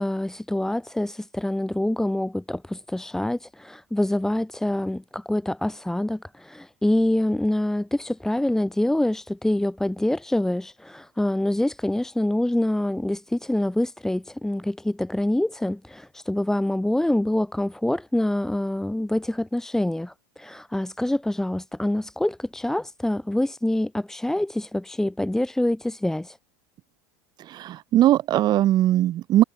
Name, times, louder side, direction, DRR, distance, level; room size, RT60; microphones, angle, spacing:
voice 1, 0.0-26.4, left 1 dB, 5° left, 1.9 m, -26 dB
voice 2, 27.4-29.4, right 13 dB, 40° right, 1.8 m, -20 dB
hypercardioid pair, 100°, 11 cm